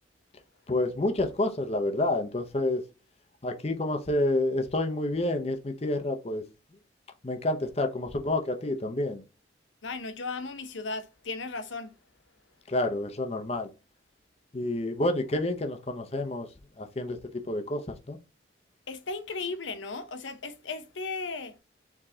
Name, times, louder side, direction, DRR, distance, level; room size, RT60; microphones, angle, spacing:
voice 1, 0.7-2.8 3.4-6.4 7.2-9.2 12.7-13.7 14.5-16.5 16.8-18.2, left 1 dB, 35° left, 0.6 m, -29 dB
voice 2, 9.8-11.9 18.9-21.6, left 3 dB, 90° left, 0.7 m, -36 dB
4.8 x 3.6 x 2.7 m
head